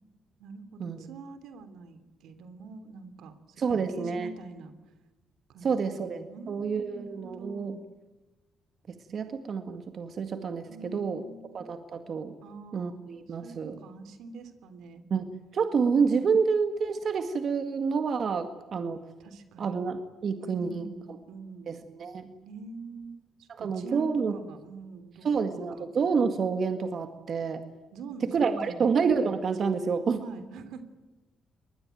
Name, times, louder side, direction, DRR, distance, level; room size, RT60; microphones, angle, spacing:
voice 1, 0.4-4.7 5.5-7.8 10.7-11.5 12.4-13.0 13.3-15.0 15.8-16.2 19.2-19.8 20.4-21.8 22.4-25.8 27.9-28.8 30.2-30.8, right 4 dB, 80° right, 10 dB, 3.0 m, -45 dB
voice 2, 3.6-4.3 5.6-7.7 8.9-11.2 11.5-12.3 12.7-13.8 15.1-15.3 15.5-19.0 19.6-20.9 21.7-22.3 23.6-24.4 25.2-27.6 28.3-30.2, right 5 dB, 55° right, 8 dB, 1.9 m, -28 dB
23.5 x 20.5 x 9.2 m, 1.1 s
cardioid pair, 90°, 0 cm